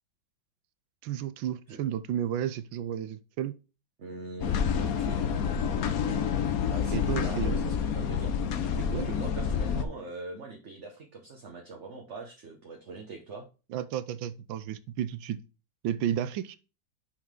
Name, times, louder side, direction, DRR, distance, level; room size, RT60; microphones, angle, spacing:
voice 1, 1.0-3.6 6.9-7.6 8.9-9.1 13.7-15.4 15.8-16.6, right 10 dB, 85° right, 1.4 m, -32 dB
voice 2, 4.0-5.3 6.3-6.4 6.7-8.3 8.8-13.4, right 3 dB, 45° right, 1.3 m, -42 dB
sound 1, 4.4-9.9, left 7 dB, 60° left, 1.1 m, -28 dB
6.5 x 5.5 x 3.7 m
omnidirectional pair, 2.1 m